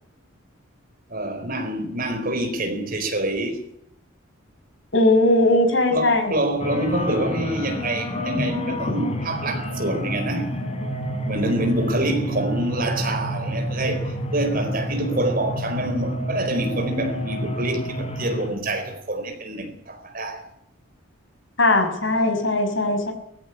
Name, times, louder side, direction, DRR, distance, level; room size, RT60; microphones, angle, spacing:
voice 1, 1.1-3.6 5.9-10.5 11.3-20.4, right 1 dB, 45° right, 4.4 m, -26 dB
voice 2, 4.9-6.3 21.6-23.1, left 2 dB, 60° left, 5.9 m, -19 dB
sound 1, 6.6-18.5, equal, 30° left, 4.1 m, -29 dB
20.5 x 15.0 x 9.9 m
head